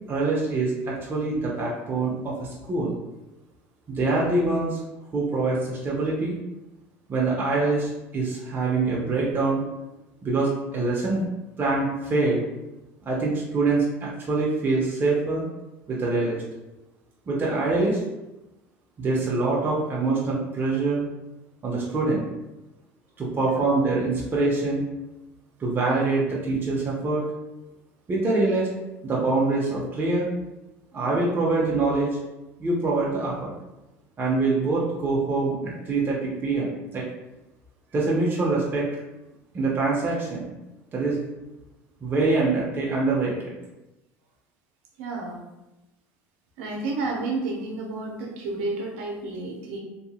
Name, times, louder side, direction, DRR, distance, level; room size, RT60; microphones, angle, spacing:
voice 1, 0.1-3.0 3.9-4.8 5.1-6.4 7.1-9.6 10.2-11.2 11.6-12.4 13.0-15.4 15.9-16.4 17.3-18.0 19.0-21.0 21.6-22.2 23.2-24.8 25.6-27.2 28.1-28.7 29.0-30.3 30.9-32.1 32.6-33.5 34.2-37.0 37.9-38.9 39.5-40.4 40.9-41.2 42.0-43.6, right 3 dB, 30° right, -4 dB, 0.7 m, -24 dB
voice 2, 45.0-45.4 46.6-49.8, right 3 dB, 75° right, 0 dB, 0.7 m, -31 dB
2.8 x 2.6 x 2.4 m, 1.0 s
hypercardioid pair, 85°, 7 cm